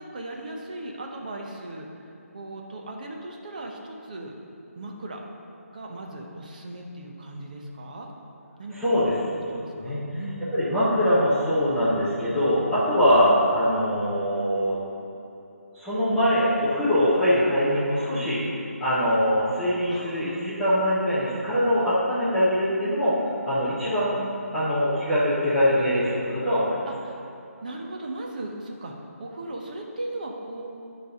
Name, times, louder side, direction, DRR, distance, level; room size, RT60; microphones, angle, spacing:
voice 1, 0.0-1.9 2.3-4.4 4.8-5.2 5.7-8.1 8.6-9.2 9.5-10.5 13.1-13.3 19.9-20.4 27.0-27.2 27.6-30.6, right 2 dB, 30° right, 0 dB, 0.7 m, -37 dB
voice 2, 8.7-9.2 9.8-10.0 10.5-14.8 15.7-18.4 18.8-24.2 24.5-26.8, equal, ahead, -16 dB, 0.4 m, -23 dB
9.2 x 3.3 x 6.3 m, 2.8 s
hypercardioid pair, 175°, 8 cm